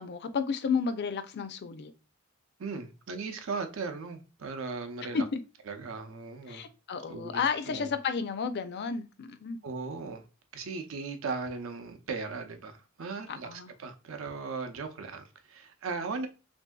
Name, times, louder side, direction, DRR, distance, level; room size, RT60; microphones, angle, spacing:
voice 1, 0.0-1.9 5.1-5.4 6.5-9.6 13.3-13.7, left 5 dB, 55° left, 0.4 m, -32 dB
voice 2, 2.6-5.3 5.7-6.7 7.1-7.9 9.6-10.2 10.5-16.3, right 4 dB, 70° right, 0.6 m, -37 dB
3.4 x 2.6 x 2.2 m
head